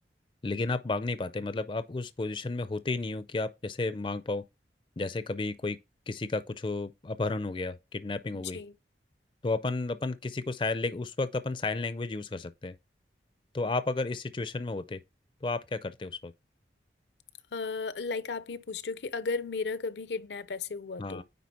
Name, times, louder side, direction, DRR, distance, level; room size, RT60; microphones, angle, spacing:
voice 1, 0.4-4.4 5.0-5.8 6.1-8.6 9.4-12.8 13.5-15.0 15.4-16.3 21.0-21.2, left 3 dB, 30° left, 0.4 m, -32 dB
voice 2, 8.3-8.7 17.5-21.2, left 4 dB, 75° left, 0.6 m, -35 dB
9.4 x 4.0 x 4.2 m
head